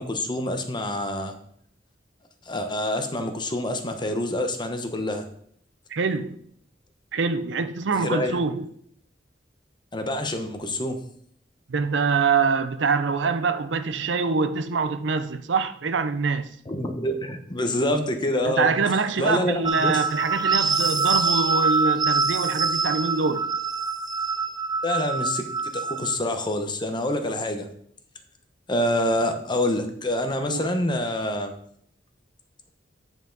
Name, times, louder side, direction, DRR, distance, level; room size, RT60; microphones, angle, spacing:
voice 1, 0.0-1.3 2.5-5.3 7.9-8.4 9.9-11.0 16.7-18.7 19.2-20.0 24.8-25.4 25.7-27.7 28.7-31.5, left 1 dB, 25° left, 0.9 m, -26 dB
voice 2, 5.9-6.4 7.1-8.7 11.7-16.5 18.4-23.5 30.5-30.7, right 4 dB, 85° right, 0.6 m, -24 dB
sound 1, 19.7-26.2, right 4 dB, 25° right, 0.4 m, -25 dB
9.2 x 5.6 x 3.9 m
head